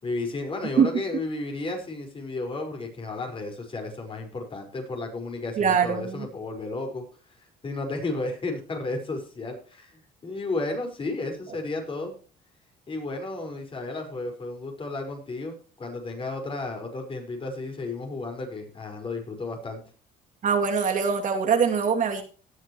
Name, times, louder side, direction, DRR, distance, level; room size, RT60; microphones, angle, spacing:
voice 1, 0.0-7.1 7.6-12.2 12.9-19.8, left 2 dB, 30° left, 3 dB, 5.2 m, -33 dB
voice 2, 5.6-6.3 20.4-22.2, right 6 dB, 50° right, 4 dB, 2.7 m, -23 dB
18.0 x 9.9 x 3.1 m, 0.37 s
cardioid pair, 110°, 17 cm